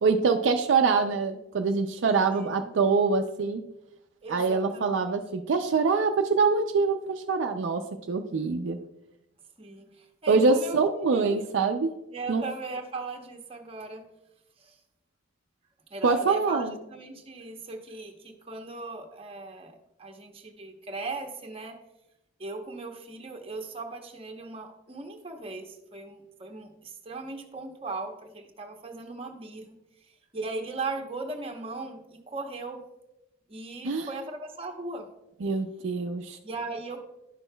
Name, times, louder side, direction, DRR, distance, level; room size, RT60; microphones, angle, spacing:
voice 1, 0.0-3.6 4.3-7.8 8.1-8.8 10.3-11.9 12.3-12.4 16.0-16.8 33.8-34.1 35.4-36.4, right 4 dB, 65° right, 5 dB, 0.4 m, -24 dB
voice 2, 4.2-5.0 9.6-11.4 12.1-14.1 14.6-14.7 15.9-21.8 22.4-29.8 30.3-32.8 33.5-35.1 36.4-37.1, right 3 dB, 30° right, 3 dB, 0.8 m, -38 dB
10.5 x 6.2 x 2.2 m, 0.89 s
head